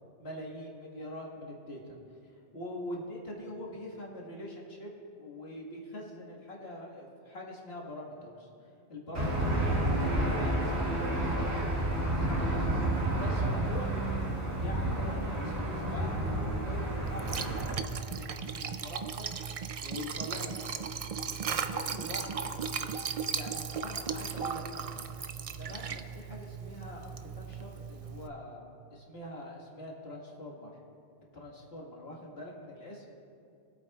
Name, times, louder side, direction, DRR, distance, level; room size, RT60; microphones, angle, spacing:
voice 1, 0.2-2.0 2.3-8.5 8.9-12.8 13.1-13.9 14.6-18.0 18.3-19.3 19.8-20.9 21.3-25.0 25.4-30.7 31.3-33.2, left 1 dB, 75° left, -3 dB, 2.0 m, -44 dB
Aircraft / Engine, 9.1-17.7, right 1 dB, 90° right, 1.9 m, -30 dB
Liquid, 17.0-28.3, right 6 dB, 55° right, 0.4 m, -37 dB
23.0 x 8.3 x 2.4 m, 2.7 s
omnidirectional pair, 1.1 m